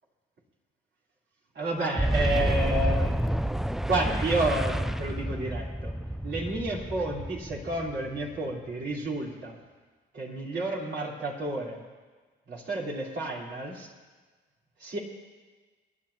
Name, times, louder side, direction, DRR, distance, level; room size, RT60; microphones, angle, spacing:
voice 1, 1.5-3.1 3.9-6.0 6.2-9.6 10.1-11.8 12.5-13.9 14.8-15.0, right 2 dB, 60° right, -4 dB, 4.2 m, -30 dB
Boom, 1.9-8.5, right 1 dB, ahead, 0.3 m, -29 dB
28.5 x 11.0 x 2.9 m, 1.4 s
supercardioid pair, 70°, 21 cm